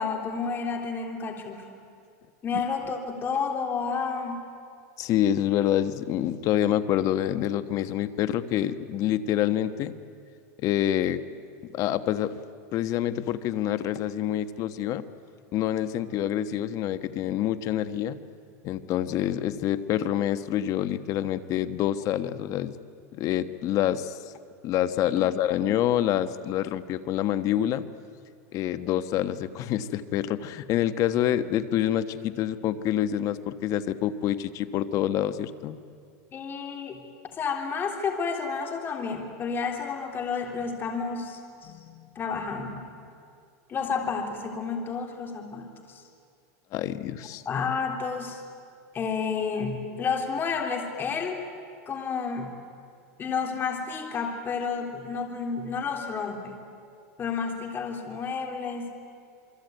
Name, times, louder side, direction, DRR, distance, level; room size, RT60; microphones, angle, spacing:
voice 1, 0.0-1.7 2.4-4.5 25.2-25.7 36.3-37.0 37.3-41.7 42.1-42.9 43.7-46.0 47.4-48.4 48.9-51.4 51.9-52.5 53.2-56.6 57.2-58.9, left 5 dB, 25° left, 3 dB, 3.3 m, -31 dB
voice 2, 5.0-9.9 10.6-11.2 11.7-12.4 12.7-15.0 15.5-18.2 18.6-22.7 23.1-24.2 24.6-27.8 28.5-35.8 41.7-42.1 46.7-47.4, left 11 dB, 45° left, 12 dB, 1.3 m, -27 dB
27.5 x 23.0 x 9.3 m, 2.4 s
supercardioid pair, 140°, 8 cm